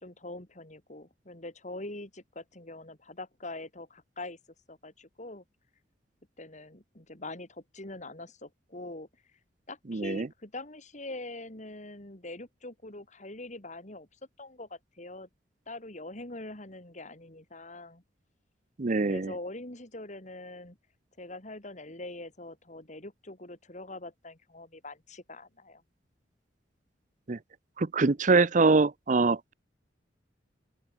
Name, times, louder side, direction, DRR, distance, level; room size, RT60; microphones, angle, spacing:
voice 1, 0.0-4.4 4.7-5.4 6.4-9.1 9.7-14.1 14.4-15.3 15.7-18.0 19.1-20.8 21.2-25.8, left 2 dB, 40° left, 4.4 m, -43 dB
voice 2, 9.9-10.3 18.8-19.3 27.3-27.4 27.8-29.5, right 3 dB, 45° right, 0.7 m, -24 dB
open air
head